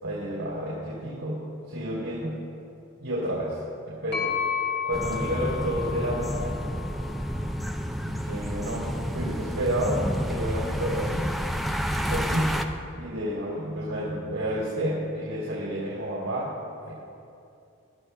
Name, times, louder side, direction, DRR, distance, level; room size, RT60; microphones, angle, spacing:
voice 1, 0.0-2.4 3.0-4.4 4.8-6.6 8.0-11.3 12.1-12.6 12.9-16.5 16.9-17.0, equal, 90° right, -6 dB, 3.0 m, -30 dB
sound 1, 4.1-7.9, left 7 dB, 55° left, 2.1 m, -33 dB
sound 2, 4.9-12.6, equal, ahead, 0.4 m, -30 dB
20.5 x 12.0 x 2.3 m, 2.6 s
head